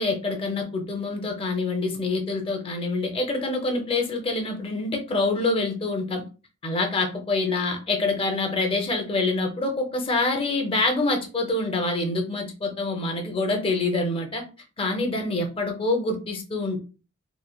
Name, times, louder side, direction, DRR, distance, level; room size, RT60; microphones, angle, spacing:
voice 1, 0.0-6.2 6.6-14.4 14.8-16.8, left 2 dB, 25° left, 4 dB, 0.5 m, -26 dB
3.1 x 2.1 x 2.2 m, 0.33 s
head